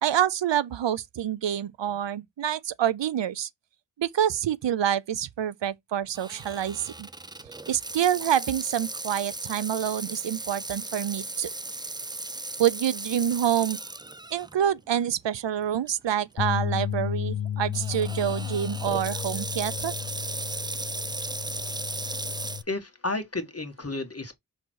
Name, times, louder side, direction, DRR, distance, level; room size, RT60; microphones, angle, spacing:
voice 1, 0.0-3.5 4.0-7.1 7.7-11.5 12.6-13.8 14.3-19.9, right 10 dB, 80° right, 0.6 m, -27 dB
Water tap faucet / Sink (filling or washing), 6.1-14.5 15.0-15.1 15.9-16.1 17.7-22.6, right 2 dB, 10° right, 0.4 m, -36 dB
sound 1, 16.4-22.6, left 10 dB, 70° left, 0.6 m, -33 dB
voice 2, 22.7-24.4, left 2 dB, 35° left, 1.9 m, -32 dB
6.1 x 3.6 x 4.6 m
wide cardioid pair, 50°, 43 cm